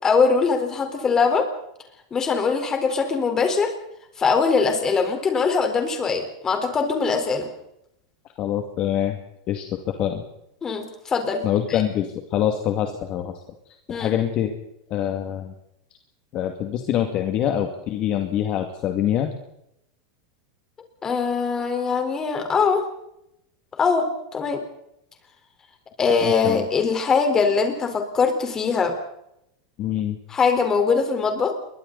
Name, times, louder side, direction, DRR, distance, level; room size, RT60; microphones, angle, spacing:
voice 1, 0.0-1.5 2.1-3.7 4.2-7.5 10.6-11.4 11.7-11.8 13.9-14.1 21.0-22.8 23.8-24.6 26.0-28.9 30.3-31.5, left 5 dB, 20° left, 5 dB, 4.3 m, -22 dB
voice 2, 8.4-9.2 9.5-10.2 11.4-13.3 13.9-14.5 14.9-15.5 16.3-19.3 26.2-26.6 29.8-30.2, left 10 dB, 40° left, 4 dB, 2.3 m, -25 dB
29.0 x 23.0 x 4.1 m, 0.81 s
supercardioid pair, 140°, 3 cm